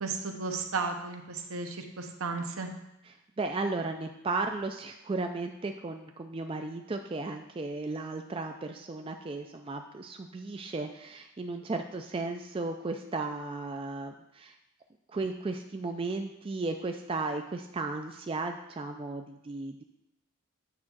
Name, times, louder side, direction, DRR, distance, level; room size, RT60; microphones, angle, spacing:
voice 1, 0.0-2.7, right 4 dB, 75° right, 4 dB, 0.9 m, -34 dB
voice 2, 3.4-14.5 15.1-19.7, right 3 dB, 25° right, 5 dB, 0.3 m, -35 dB
8.6 x 3.6 x 6.1 m, 0.88 s
head